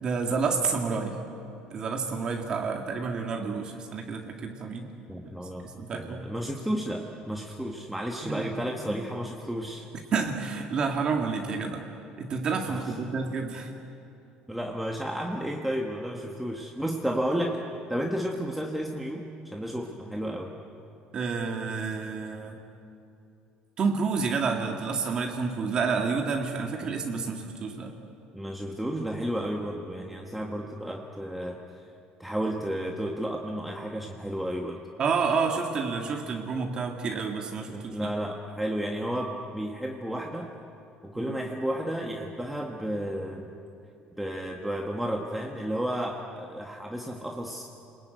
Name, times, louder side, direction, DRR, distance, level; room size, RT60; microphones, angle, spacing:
voice 1, 0.0-1.2 1.7-4.9 5.2-5.3 5.8-6.3 8.2-8.5 8.9-9.0 10.1-11.8 12.2-13.7 21.1-22.6 23.8-27.9 35.0-38.1 41.2-41.4, right 5 dB, 30° right, 2 dB, 1.9 m, -29 dB
voice 2, 5.1-9.9 12.7-12.9 14.5-17.6 17.9-20.5 28.3-31.6 32.2-34.8 37.7-40.5 41.0-43.5 44.2-47.7, equal, 5° right, 0 dB, 1.4 m, -32 dB
29.5 x 21.0 x 9.3 m, 2.7 s
cardioid pair, 170°, 3 cm